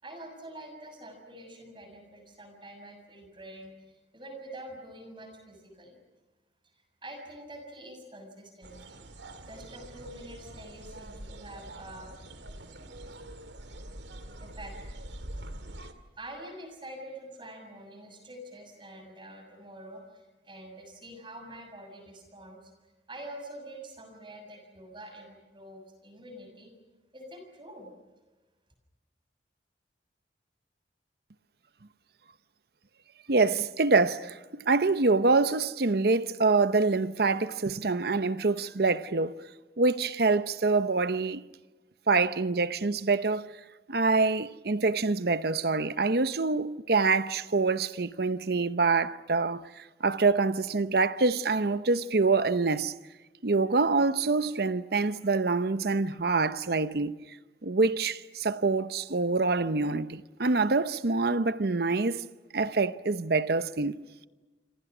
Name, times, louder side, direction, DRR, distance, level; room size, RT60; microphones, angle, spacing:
voice 1, 0.0-6.0 6.6-6.7 7.0-9.0 9.5-12.1 12.8-12.9 14.4-15.0 15.8-26.7 27.1-27.9, right 1 dB, 30° right, 6.8 m, -46 dB
sound 1, 8.6-15.9, right 1 dB, 85° right, 2.2 m, -44 dB
voice 2, 33.3-39.4 39.8-41.4 42.1-43.5 43.9-52.9 53.4-57.2 57.6-62.2 62.5-64.0, right 3 dB, 60° right, 0.8 m, -26 dB
27.0 x 27.0 x 6.1 m
head